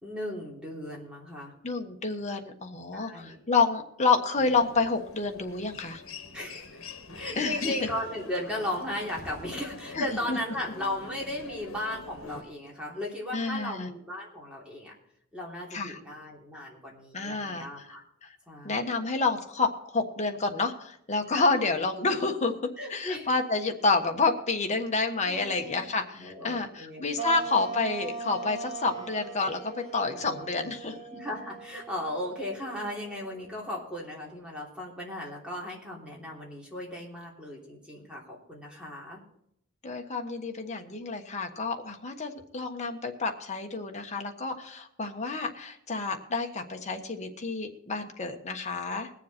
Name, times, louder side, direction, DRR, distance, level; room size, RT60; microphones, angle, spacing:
voice 1, 0.0-1.5 2.9-3.4 6.3-6.8 7.1-14.9 15.3-18.0 18.5-18.9 21.3-21.6 22.8-23.3 25.2-25.8 26.1-27.0 27.3-27.4 30.2-30.4 31.1-39.2, left 1 dB, 5° right, -3 dB, 3.2 m, -36 dB
voice 2, 1.6-6.0 7.4-7.7 9.9-10.4 13.3-13.9 15.7-16.0 17.1-18.0 18.2-18.3 18.6-22.5 22.9-31.0 39.8-49.1, left 3 dB, 35° left, 4 dB, 1.3 m, -29 dB
Human voice, 4.4-12.4, left 4 dB, 75° left, 1.5 m, -43 dB
sound 1, 27.2-33.8, right 4 dB, 35° right, 3.2 m, -40 dB
21.0 x 7.3 x 4.3 m, 0.72 s
head